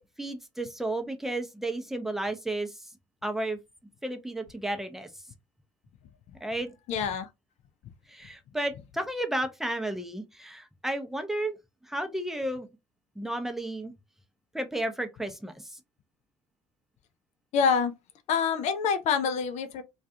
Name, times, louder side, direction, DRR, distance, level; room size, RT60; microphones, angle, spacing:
voice 1, 0.2-2.9 3.2-3.6 4.0-5.1 6.4-6.8 8.1-11.6 11.8-12.7 13.2-13.9 14.5-15.8, right 1 dB, ahead, 0.6 m, -33 dB
voice 2, 6.9-7.3 17.5-17.9 18.3-19.8, left 6 dB, 55° left, 0.5 m, -26 dB
2.3 x 2.3 x 2.6 m
hypercardioid pair, 55°, 14 cm